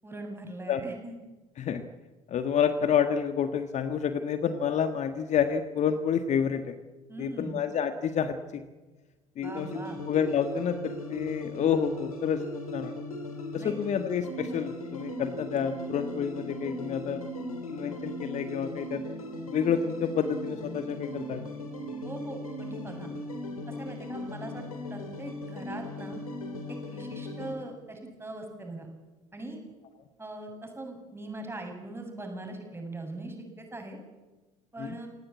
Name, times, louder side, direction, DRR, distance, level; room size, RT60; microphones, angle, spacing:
voice 1, 0.0-1.2 7.1-7.6 9.4-10.0 13.6-13.7 22.0-23.1 23.8-26.2 26.7-28.9 29.3-29.6 30.2-34.0 34.7-35.1, right 2 dB, 15° right, 3 dB, 7.6 m, -41 dB
voice 2, 1.6-1.9 2.3-6.8 7.2-8.6 9.4-9.7 10.1-12.9 13.5-17.2 17.7-19.0 19.4-21.5 34.8-35.0, left 7 dB, 40° left, 9 dB, 1.6 m, -29 dB
sound 1, 9.4-27.5, left 1 dB, 80° left, 3.2 m, -38 dB
28.5 x 18.5 x 8.6 m, 1.2 s
figure-of-eight pair, 60°, 18 cm